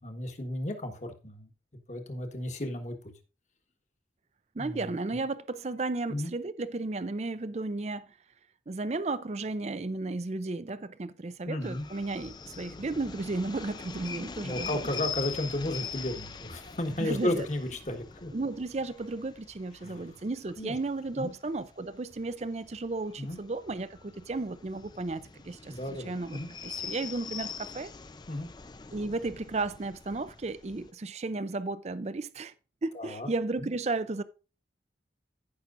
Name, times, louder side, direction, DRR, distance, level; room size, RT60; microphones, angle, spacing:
voice 1, 0.0-1.5 1.9-2.9 4.6-5.0 6.1-6.3 11.5-11.9 14.4-18.3 19.8-20.1 20.6-20.7 21.2-21.3 23.2-23.4 25.7-26.5 28.3-28.5 32.9-33.3 33.6-33.7, left 1 dB, 40° left, 1.4 m, -34 dB
voice 2, 4.5-8.0 8.7-14.8 17.0-17.5 18.3-27.9 28.9-32.5 32.8-34.2, right 3 dB, 35° right, 0.5 m, -34 dB
sound 1, 11.6-30.9, left 6 dB, 25° left, 0.4 m, -43 dB
15.0 x 5.9 x 2.6 m
head